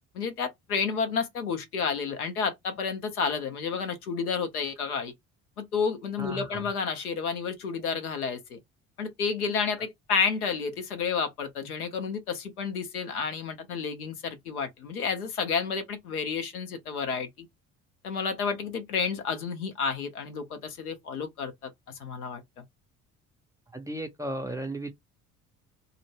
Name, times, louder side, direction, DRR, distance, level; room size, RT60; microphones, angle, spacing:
voice 1, 0.1-5.1 5.6-8.6 9.0-17.5 18.0-21.7 22.0-22.4, left 5 dB, 85° left, 0.7 m, -30 dB
voice 2, 6.2-6.7 23.7-24.9, right 1 dB, 10° right, 0.4 m, -35 dB
2.0 x 2.0 x 3.1 m
figure-of-eight pair, 55°, 44 cm